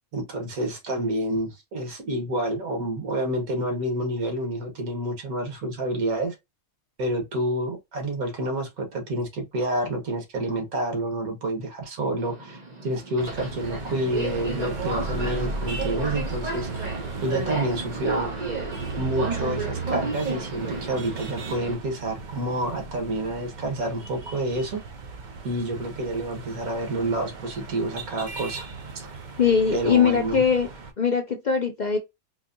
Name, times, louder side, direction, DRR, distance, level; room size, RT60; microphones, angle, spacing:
voice 1, 0.1-6.3 7.0-16.9 17.2-18.3 19.0-24.8 25.4-28.7 29.0-29.2 29.7-30.4, right 1 dB, 90° right, 1.7 m, -28 dB
Subway metro underground, 12.2-21.7, right 3 dB, 35° right, 1.0 m, -33 dB
sound 1, 13.2-30.9, right 3 dB, 55° right, 0.5 m, -36 dB
voice 2, 29.4-30.7 31.0-32.0, left 6 dB, 60° left, 0.4 m, -21 dB
4.0 x 2.7 x 2.5 m
omnidirectional pair, 1.5 m